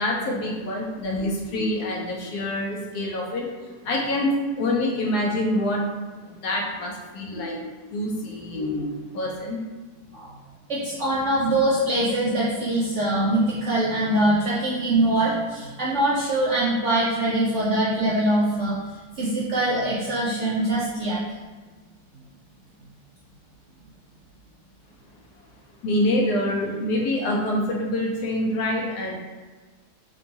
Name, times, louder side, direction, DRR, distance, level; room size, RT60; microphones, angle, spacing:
voice 1, 0.0-5.9 6.2-9.6 25.8-29.2, left 1 dB, 70° left, -1 dB, 1.2 m, -26 dB
voice 2, 10.7-18.8 19.2-21.2, right 1 dB, 65° right, -6 dB, 0.7 m, -23 dB
3.7 x 2.3 x 3.9 m, 1.3 s
omnidirectional pair, 1.8 m